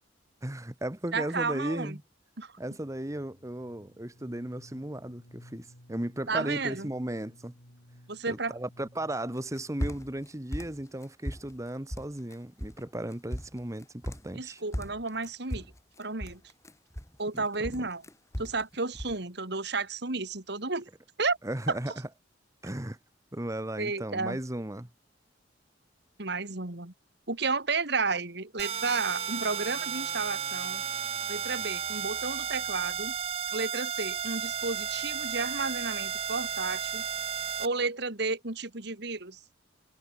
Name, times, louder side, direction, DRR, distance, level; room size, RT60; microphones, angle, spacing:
voice 1, 0.4-2.0 2.6-7.5 8.3-14.6 17.3-17.4 21.4-21.9 22.6-23.0 23.3-24.9, right 1 dB, 15° right, 1.2 m, -35 dB
voice 2, 1.1-2.0 2.4-2.5 6.3-6.9 8.1-8.5 14.3-15.7 16.0-16.4 17.2-18.0 18.4-20.9 21.2-21.4 21.7-21.8 23.8-24.4 26.2-26.9 27.3-30.8 31.3-33.1 33.5-37.0 37.6-39.4, right 4 dB, 60° right, 2.5 m, -32 dB
sound 1, 2.8-10.5, equal, 70° left, 7.5 m, -57 dB
sound 2, 9.4-10.3 10.5-11.6 11.9-12.3 12.6-12.8 13.1-14.4 14.7-17.4 17.6-18.6 18.9-19.2, equal, 15° left, 5.3 m, -37 dB
sound 3, 28.6-37.7, right 8 dB, 35° right, 0.7 m, -33 dB
head